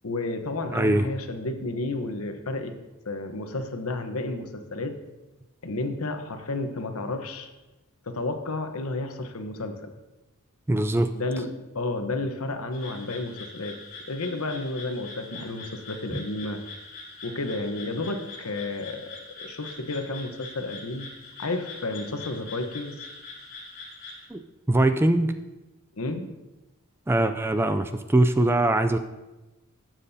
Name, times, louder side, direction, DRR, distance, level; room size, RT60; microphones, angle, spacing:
voice 1, 0.0-2.7 3.1-4.9 5.6-7.5 8.1-9.9 11.1-11.5 11.7-13.8 14.1-16.6 17.2-19.1 19.4-21.1 21.4-23.0 26.0-26.3, left 2 dB, 75° left, 6 dB, 1.0 m, -31 dB
voice 2, 0.7-1.0 10.7-11.1 24.3-24.4 24.7-25.3 27.1-29.0, right 1 dB, 10° right, 9 dB, 0.3 m, -22 dB
sound 1, 12.7-24.2, left 3 dB, 45° left, 4.0 m, -43 dB
18.0 x 7.5 x 2.7 m, 1.1 s
head